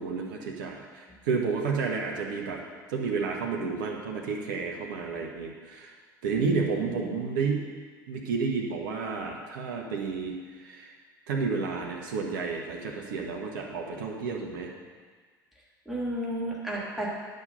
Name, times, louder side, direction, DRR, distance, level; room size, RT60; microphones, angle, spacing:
voice 1, 0.0-2.6 2.9-5.9 6.2-7.7 8.1-10.9 11.3-14.7, right 5 dB, 65° right, 0 dB, 1.3 m, -31 dB
voice 2, 6.3-7.0 15.8-17.1, right 1 dB, ahead, -6 dB, 2.8 m, -33 dB
9.7 x 6.6 x 5.4 m, 1.5 s
figure-of-eight pair, 70°, 11 cm